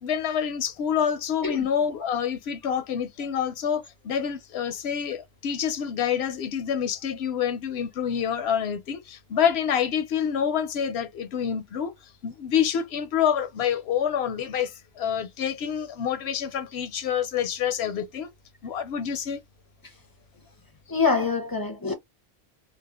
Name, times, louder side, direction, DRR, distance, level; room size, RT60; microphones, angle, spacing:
voice 1, 0.0-11.9 12.2-18.3 18.6-19.4, left 8 dB, 85° left, 0.8 m, -27 dB
voice 2, 20.9-21.9, left 4 dB, 30° left, 0.5 m, -25 dB
2.6 x 2.2 x 2.3 m
omnidirectional pair, 1.0 m